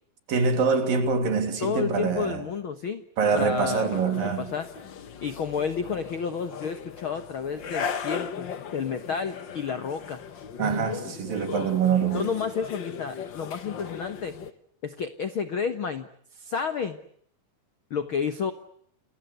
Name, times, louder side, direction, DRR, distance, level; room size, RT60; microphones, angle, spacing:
voice 1, 0.3-2.4 3.2-4.5 10.6-12.3, right 5 dB, 65° right, 4.7 m, -25 dB
voice 2, 1.6-3.0 3.3-4.7 5.2-10.2 12.1-14.4 14.8-17.0 17.9-18.5, left 6 dB, 65° left, 1.3 m, -31 dB
sound 1, 3.2-14.5, left 7 dB, 90° left, 1.0 m, -37 dB
29.5 x 24.5 x 8.1 m
omnidirectional pair, 4.4 m